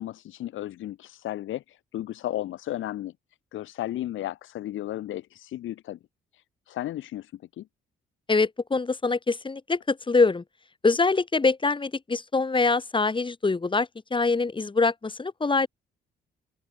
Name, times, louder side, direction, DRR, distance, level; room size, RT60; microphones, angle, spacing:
voice 1, 0.0-3.1 3.5-6.0 6.3-7.7, left 13 dB, 80° left, 4.9 m, -34 dB
voice 2, 8.3-10.4 10.8-15.7, left 3 dB, 25° left, 3.9 m, -24 dB
open air
cardioid pair, 90°, 20 cm